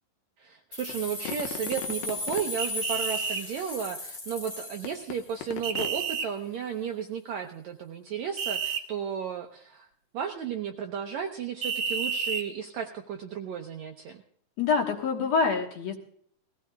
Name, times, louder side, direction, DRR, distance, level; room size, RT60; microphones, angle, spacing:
voice 1, 0.4-9.9 10.1-14.2, right 7 dB, 80° right, 4 dB, 1.6 m, -34 dB
sound 1, 0.7-5.5, left 2 dB, 30° left, 1.3 m, -37 dB
sound 2, 0.9-2.6 4.8-6.1, left 11 dB, 80° left, 2.3 m, -39 dB
sound 3, 2.6-3.4 5.6-6.3 8.4-8.8 11.6-12.4, right 6 dB, 55° right, 1.6 m, -30 dB
voice 2, 14.6-16.0, left 5 dB, 55° left, 1 dB, 2.3 m, -26 dB
20.0 x 16.0 x 2.4 m, 0.62 s
omnidirectional pair, 4.1 m